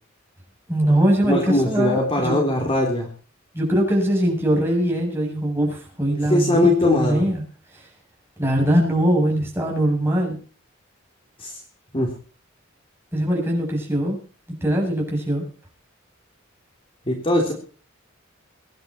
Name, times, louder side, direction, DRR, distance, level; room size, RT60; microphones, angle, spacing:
voice 1, 0.7-2.4 3.5-7.4 8.4-10.4 13.1-14.2 14.6-15.4, right 1 dB, 10° right, -1 dB, 7.7 m, -21 dB
voice 2, 1.2-3.1 6.2-7.3 11.4-11.6 11.9-12.1 17.1-17.5, left 1 dB, 30° left, 1 dB, 3.5 m, -20 dB
23.5 x 10.5 x 4.4 m, 0.38 s
head